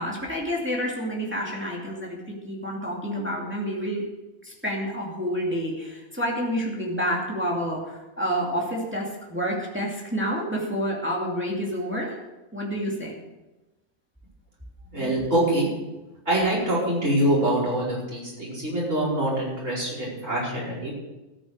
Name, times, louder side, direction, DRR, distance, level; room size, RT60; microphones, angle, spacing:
voice 1, 0.0-4.0 4.4-12.2 12.5-13.2, equal, 10° right, -3 dB, 2.4 m, -29 dB
voice 2, 14.9-15.7 16.3-20.9, right 1 dB, 75° right, -4 dB, 5.4 m, -24 dB
13.5 x 8.4 x 6.5 m, 1.1 s
omnidirectional pair, 1.3 m